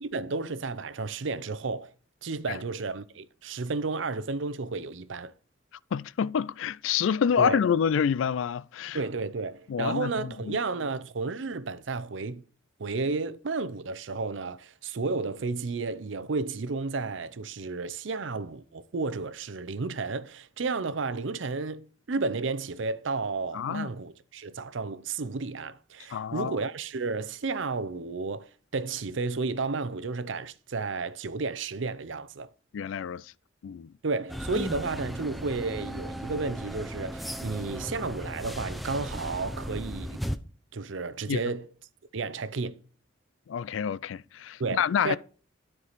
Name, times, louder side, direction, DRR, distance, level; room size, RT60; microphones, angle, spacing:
voice 1, 0.0-1.9 2.2-5.3 7.4-7.6 8.9-12.4 12.8-32.5 34.0-40.2 40.7-41.7 42.1-42.8 44.6-45.2, right 3 dB, 80° right, 0.6 m, -32 dB
voice 2, 5.9-9.0 9.7-10.6 23.5-23.9 26.1-26.6 32.7-33.3 33.6-33.9 41.3-41.4 43.5-45.2, left 7 dB, 85° left, 0.3 m, -28 dB
sound 1, 34.3-40.4, equal, ahead, 0.5 m, -36 dB
13.0 x 4.7 x 4.0 m
head